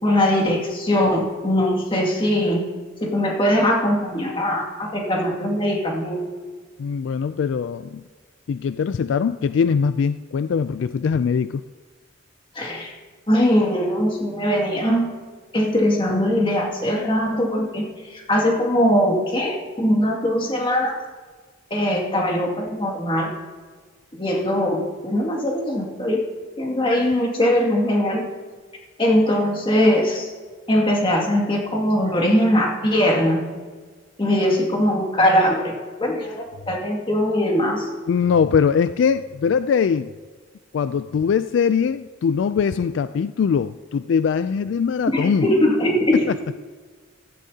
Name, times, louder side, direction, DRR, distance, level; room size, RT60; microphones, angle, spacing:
voice 1, 0.0-2.6 3.0-6.2 12.6-12.9 13.3-15.1 15.5-20.9 21.7-23.3 24.1-26.2 26.6-28.2 29.0-30.3 30.7-33.4 34.2-37.9 45.1-46.3, equal, 25° left, -1 dB, 2.2 m, -21 dB
voice 2, 6.8-8.0 8.5-11.6 38.1-40.1 40.7-45.5 46.3-46.6, left 6 dB, 70° left, 13 dB, 0.3 m, -21 dB
15.5 x 13.5 x 2.8 m, 1.4 s
head